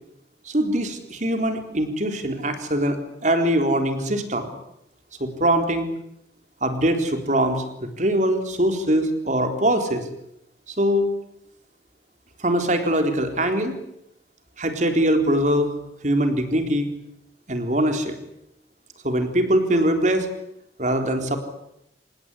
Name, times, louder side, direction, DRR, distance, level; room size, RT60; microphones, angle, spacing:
voice 1, 0.5-3.0 3.2-4.5 5.2-5.9 6.6-10.1 10.7-11.1 12.4-13.7 14.6-15.7 16.0-16.9 17.5-18.2 19.0-20.3 20.8-21.4, right 1 dB, 45° right, 6 dB, 3.9 m, -22 dB
26.5 x 20.0 x 9.9 m, 0.81 s
head